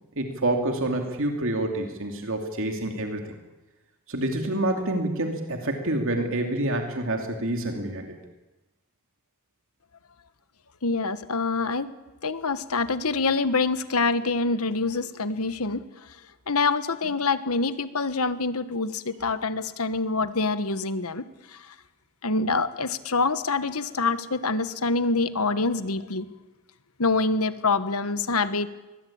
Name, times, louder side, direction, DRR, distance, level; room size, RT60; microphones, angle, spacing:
voice 1, 0.2-3.2 4.1-8.2, right 1 dB, 60° right, 3 dB, 2.8 m, -27 dB
voice 2, 10.8-11.9 12.2-15.8 16.5-21.3 21.5-21.7 22.2-26.3 27.0-28.7, left 3 dB, 80° left, 12 dB, 1.4 m, -26 dB
24.0 x 21.5 x 8.8 m, 1.1 s
head